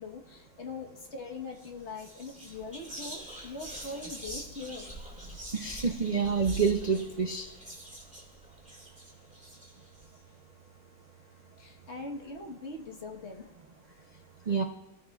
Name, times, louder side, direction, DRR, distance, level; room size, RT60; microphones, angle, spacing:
voice 1, 0.0-4.9 11.6-13.5 13.9-14.0, left 3 dB, 45° left, 1 dB, 1.4 m, -42 dB
Whispering, 1.5-1.7 2.0-10.0, right 2 dB, 5° right, 2.0 m, -44 dB
voice 2, 5.5-7.5 14.5-14.6, right 5 dB, 50° right, 4 dB, 0.5 m, -28 dB
25.0 x 13.5 x 2.4 m, 0.95 s
omnidirectional pair, 1.7 m